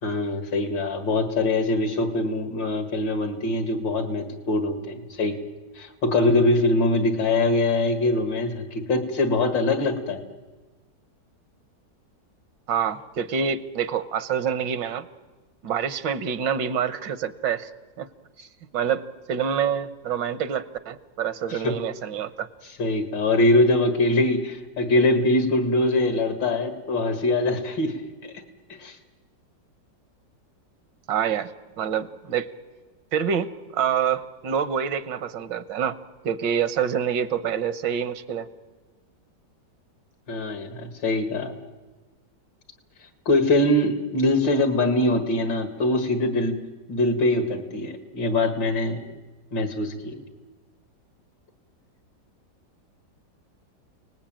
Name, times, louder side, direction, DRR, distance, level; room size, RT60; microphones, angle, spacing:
voice 1, 0.0-5.4 5.8-10.2 21.5-21.7 22.8-28.3 28.8-29.0 40.3-41.6 43.3-46.5 46.9-49.0 49.5-50.2, left 2 dB, 85° left, 8 dB, 2.6 m, -23 dB
voice 2, 12.7-15.1 15.6-17.7 18.0-18.1 18.4-18.5 18.7-22.5 31.1-31.5 31.8-32.5 33.1-36.0 36.2-38.5, right 8 dB, 80° right, 14 dB, 1.7 m, -26 dB
29.0 x 19.0 x 9.0 m, 1.3 s
omnidirectional pair, 1.9 m